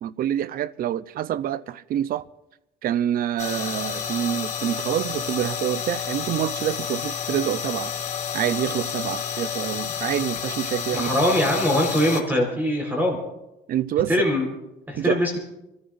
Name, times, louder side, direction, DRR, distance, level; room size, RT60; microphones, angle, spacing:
voice 1, 0.0-2.2 2.8-7.9 8.3-11.1 13.7-14.1 15.0-15.2, right 11 dB, 60° right, 0.6 m, -26 dB
sound 1, 3.4-12.2, left 7 dB, 50° left, 1.7 m, -30 dB
voice 2, 10.9-13.2 14.1-14.5 14.9-15.4, equal, 10° right, 4.2 m, -22 dB
29.5 x 14.0 x 2.6 m
cardioid pair, 110°, 17 cm